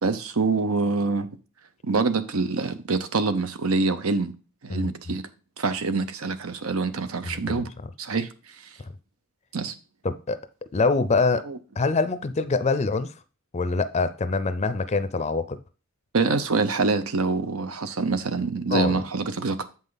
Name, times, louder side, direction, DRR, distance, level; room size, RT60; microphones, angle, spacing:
voice 1, 0.0-1.3 1.8-4.3 4.6-5.2 5.6-7.7 8.0-8.6 9.5-9.7 11.5-11.6 16.1-19.6, right 3 dB, 80° right, 0.8 m, -25 dB
voice 2, 4.7-5.2 7.2-7.6 10.0-10.4 10.7-11.5 11.8-13.1 13.5-15.6 18.7-19.0, left 4 dB, 30° left, 0.5 m, -25 dB
7.8 x 5.5 x 4.0 m
head